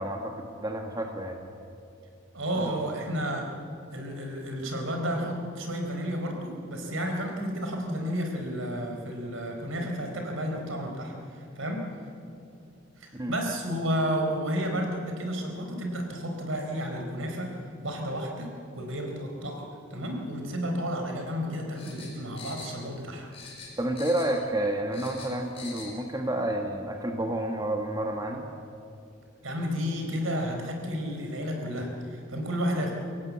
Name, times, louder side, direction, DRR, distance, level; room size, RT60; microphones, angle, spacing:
voice 1, 0.0-1.5 2.5-2.8 13.1-13.3 23.8-28.4, right 1 dB, 20° right, 3 dB, 1.4 m, -30 dB
voice 2, 2.3-3.4 3.9-11.1 11.6-11.9 13.0-17.5 17.8-19.6 19.9-23.3 29.4-32.9, equal, 75° right, 2 dB, 4.1 m, -31 dB
sound 1, 21.7-23.1 23.3-24.5 24.7-25.9 26.2-26.3, left 4 dB, 30° left, 5.2 m, -44 dB
23.0 x 17.0 x 8.5 m, 2.5 s
head